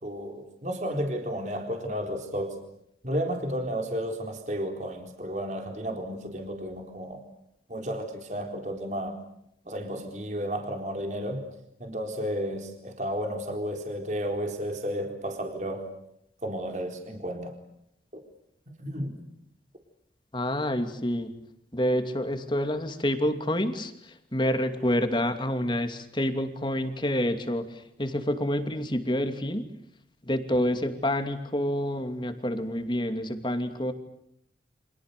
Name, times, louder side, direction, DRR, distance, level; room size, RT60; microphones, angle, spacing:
voice 1, 0.0-2.6 3.0-7.2 7.7-9.2 9.7-11.4 11.8-15.9 16.4-17.5 18.1-18.2 18.8-19.2, equal, 40° right, 4 dB, 4.1 m, -32 dB
voice 2, 20.3-21.3 21.7-29.7 30.2-33.9, left 1 dB, 25° left, 7 dB, 2.7 m, -28 dB
30.0 x 26.5 x 6.9 m, 0.76 s
head